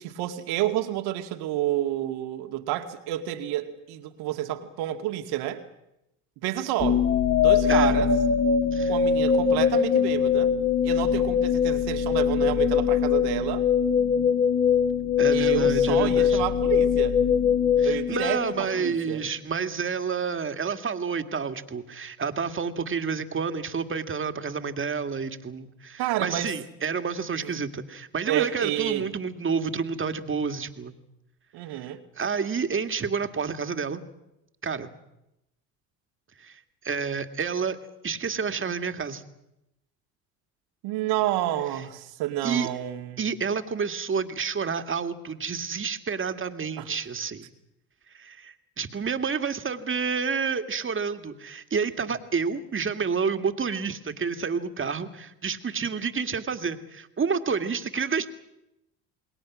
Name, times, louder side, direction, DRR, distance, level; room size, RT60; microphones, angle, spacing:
voice 1, 0.0-5.6 6.4-7.1 7.4-8.1 8.9-10.5 10.8-13.7 15.3-17.2 17.8-19.2 26.0-26.5 27.4-27.6 28.3-29.1 31.5-32.0 40.8-43.2 46.8-46.9, right 13 dB, 70° right, 7 dB, 2.2 m, -29 dB
sound 1, 6.8-18.9, left 7 dB, 35° left, 2.6 m, -22 dB
voice 2, 15.2-16.4 17.8-30.9 31.7-31.9 32.2-34.0 34.6-34.9 36.4-36.6 36.8-37.8 38.0-39.2 42.4-42.7 43.2-47.4 48.1-58.3, right 5 dB, 30° right, 8 dB, 2.2 m, -29 dB
28.0 x 21.5 x 6.2 m, 0.88 s
hypercardioid pair, 65°, 40 cm